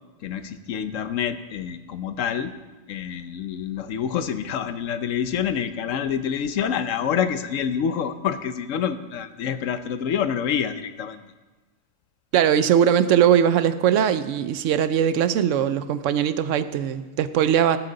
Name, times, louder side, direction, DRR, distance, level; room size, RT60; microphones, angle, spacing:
voice 1, 0.2-2.5 2.9-11.2, left 8 dB, 85° left, 11 dB, 1.1 m, -27 dB
voice 2, 12.3-17.8, right 9 dB, 80° right, 13 dB, 1.0 m, -20 dB
18.5 x 7.4 x 3.9 m, 1.2 s
omnidirectional pair, 1.3 m